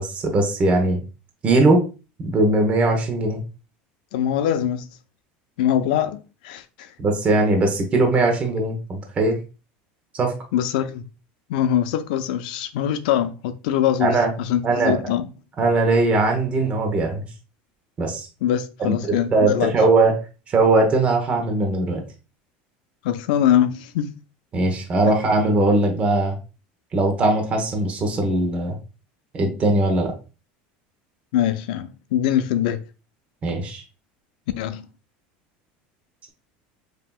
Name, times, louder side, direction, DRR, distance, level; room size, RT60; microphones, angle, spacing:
voice 1, 0.2-1.0 1.4-1.8 2.3-3.4 7.0-9.4 10.1-10.3 14.0-14.3 14.6-14.9 15.6-17.2 18.0-18.3 18.8-20.1 20.5-22.0 24.5-26.4 26.9-28.8 29.3-30.1 33.4-33.8, right 2 dB, 30° right, 1.0 m, -20 dB
voice 2, 4.1-4.9 5.6-6.9 10.5-11.0 11.5-15.3 18.4-19.7 23.0-24.1 31.3-32.8 34.6-34.9, left 10 dB, 85° left, 0.4 m, -23 dB
5.6 x 2.8 x 2.3 m
supercardioid pair, 140°, 4 cm